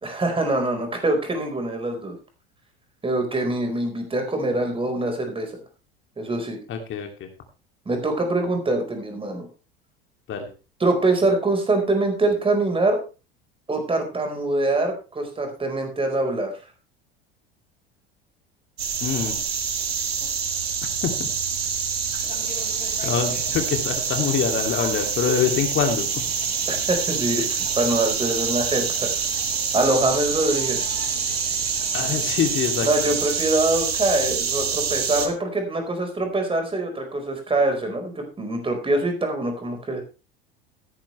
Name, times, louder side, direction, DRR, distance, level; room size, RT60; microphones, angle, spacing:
voice 1, 0.0-2.1 3.0-5.5 6.2-6.6 7.9-9.5 10.8-13.0 13.7-16.5 26.7-27.5 27.7-29.3 29.7-30.8 32.8-40.0, right 2 dB, 20° right, 5 dB, 4.6 m, -24 dB
voice 2, 6.7-7.3 10.3-10.5 19.0-19.4 21.0-21.3 23.0-26.1 31.9-32.9, left 7 dB, 40° left, 4 dB, 2.7 m, -25 dB
sound 1, 18.8-35.3, right 6 dB, 80° right, 1.9 m, -26 dB
sound 2, 22.2-33.3, left 3 dB, 25° left, 5.6 m, -43 dB
16.5 x 10.5 x 3.3 m, 0.32 s
figure-of-eight pair, 70°, 30 cm